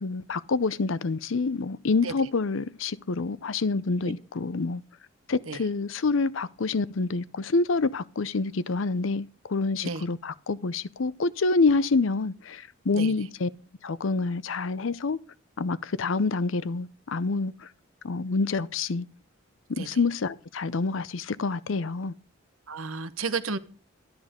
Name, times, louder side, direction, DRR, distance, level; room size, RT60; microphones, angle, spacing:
voice 1, 0.0-4.8 5.3-13.5 13.8-15.2 15.6-17.7 18.0-19.1 19.7-22.1, left 3 dB, 75° left, 0.6 m, -27 dB
voice 2, 22.7-23.6, right 4 dB, 85° right, 1.0 m, -32 dB
12.5 x 10.5 x 5.1 m
head